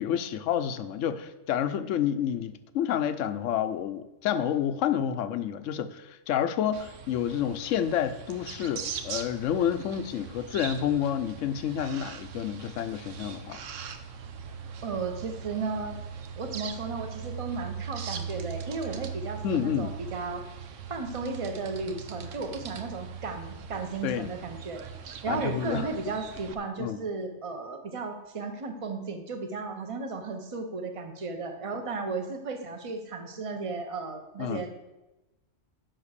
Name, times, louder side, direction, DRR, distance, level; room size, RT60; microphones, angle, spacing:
voice 1, 0.0-13.6 19.4-19.9 24.0-24.3 25.3-25.9 26.8-27.0 34.4-34.7, left 9 dB, 80° left, 1.0 m, -29 dB
sound 1, 6.7-26.5, right 7 dB, 85° right, 1.1 m, -40 dB
voice 2, 14.8-16.0 16.4-20.4 20.9-24.8 25.2-34.7, right 4 dB, 30° right, 0.9 m, -34 dB
7.8 x 5.8 x 6.6 m
omnidirectional pair, 1.3 m